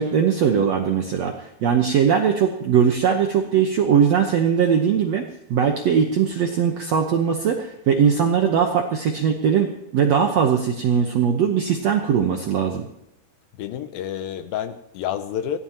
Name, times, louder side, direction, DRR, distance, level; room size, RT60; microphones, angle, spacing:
voice 1, 0.0-5.2 5.5-12.9, right 7 dB, 85° right, 3 dB, 1.5 m, -20 dB
voice 2, 13.6-15.6, left 10 dB, 75° left, 10 dB, 2.4 m, -29 dB
22.5 x 17.0 x 3.0 m, 0.82 s
omnidirectional pair, 4.6 m